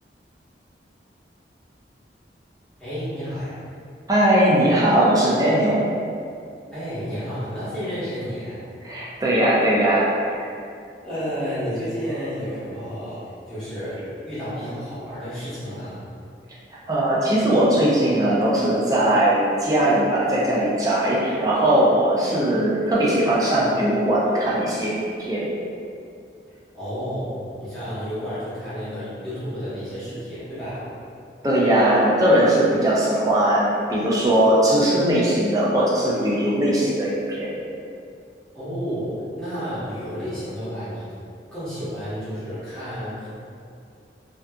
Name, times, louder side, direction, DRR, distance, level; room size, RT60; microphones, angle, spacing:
voice 1, 2.8-3.6 6.7-8.6 11.0-16.0 22.2-22.4 26.7-30.9 38.5-41.1 41.5-43.3, equal, 5° left, -15 dB, 1.0 m, -31 dB
voice 2, 4.1-5.8 8.8-10.4 16.9-24.9 25.2-25.5 31.4-37.5, right 1 dB, 20° right, -6 dB, 0.4 m, -19 dB
2.6 x 2.4 x 2.2 m, 2.4 s
head